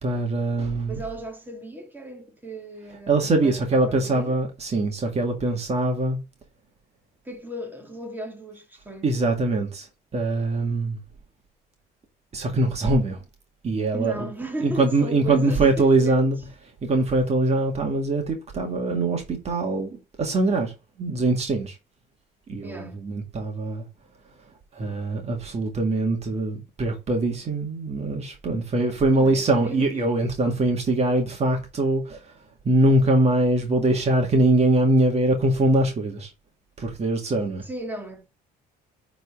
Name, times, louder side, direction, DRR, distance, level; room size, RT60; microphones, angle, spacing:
voice 1, 0.0-1.0 3.1-6.2 9.0-9.9 10.1-11.0 12.3-13.2 13.6-14.3 14.6-16.4 16.8-20.7 21.0-21.8 22.5-23.8 24.8-32.3 32.6-36.3 36.8-37.6, right 2 dB, 40° right, 2.0 m, -23 dB
voice 2, 0.9-4.4 7.2-9.1 13.9-16.2 22.6-23.0 28.9-29.9 37.6-38.2, right 1 dB, 10° right, 2.1 m, -36 dB
9.2 x 4.1 x 3.7 m
cardioid pair, 110°, 17 cm